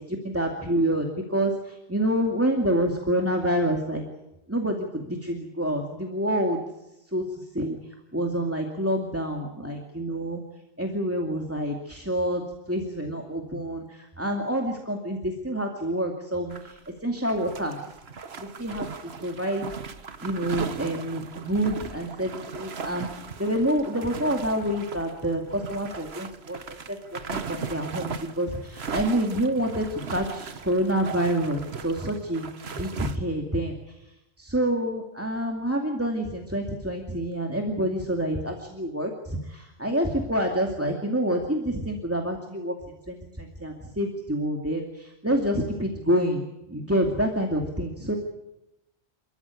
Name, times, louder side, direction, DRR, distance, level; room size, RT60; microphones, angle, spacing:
voice 1, 0.2-4.0 4.5-6.6 7.1-7.8 8.1-10.4 10.8-17.8 18.4-18.9 19.2-19.7 20.2-23.1 23.4-34.0 34.4-46.4 46.7-48.2, right 1 dB, 10° right, 2 dB, 2.4 m, -27 dB
sound 1, 16.5-16.9 17.2-33.2, right 5 dB, 70° right, 1.5 m, -38 dB
29.5 x 14.0 x 9.7 m, 0.91 s
omnidirectional pair, 1.1 m